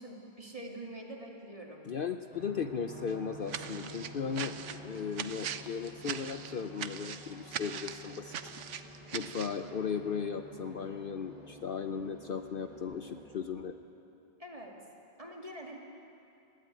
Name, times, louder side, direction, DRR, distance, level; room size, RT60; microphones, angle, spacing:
voice 1, 0.0-1.9 14.4-14.8 15.2-15.8, right 1 dB, 30° right, 0 dB, 2.5 m, -45 dB
voice 2, 1.8-8.5 9.1-13.8, left 6 dB, 55° left, 7 dB, 0.8 m, -36 dB
sound 1, 2.3-13.4, equal, 5° right, 4.9 m, -50 dB
sound 2, 3.5-9.6, right 8 dB, 85° right, 1.1 m, -41 dB
20.5 x 16.0 x 9.1 m, 2.6 s
omnidirectional pair, 1.2 m